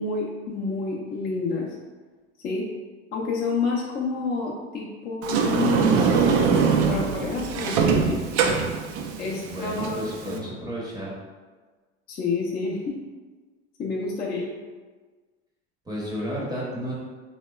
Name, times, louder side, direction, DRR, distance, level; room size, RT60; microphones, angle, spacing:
voice 1, 0.0-1.8 2.4-2.7 3.1-6.4 6.7-8.2 9.2-10.4 12.1-13.0 13.8-14.5, left 4 dB, 25° left, -4 dB, 0.4 m, -29 dB
Sliding door, 5.2-10.4, right 6 dB, 70° right, 0.5 m, -23 dB
voice 2, 9.2-11.1 15.8-16.9, equal, 10° right, -5 dB, 0.7 m, -32 dB
2.8 x 2.2 x 2.2 m, 1.4 s
hypercardioid pair, 90°, 35 cm